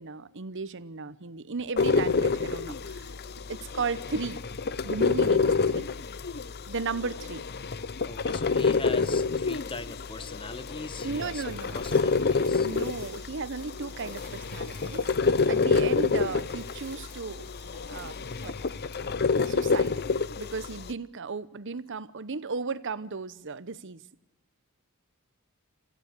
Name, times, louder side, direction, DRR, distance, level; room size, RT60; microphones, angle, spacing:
voice 1, 0.0-3.1 3.5-4.4 4.8-5.9 6.7-7.5 11.0-11.8 12.6-17.5 17.9-18.2 18.4-18.5 19.5-19.9 20.4-24.0, right 4 dB, 55° right, 16 dB, 0.9 m, -35 dB
sound 1, 1.8-20.9, left 4 dB, 50° left, 0.7 m, -28 dB
voice 2, 8.1-11.4 11.7-12.7, left 3 dB, 25° left, 14 dB, 1.0 m, -41 dB
sound 2, 9.4-19.6, equal, 5° left, 7.1 m, -54 dB
27.0 x 15.5 x 8.2 m, 0.92 s
head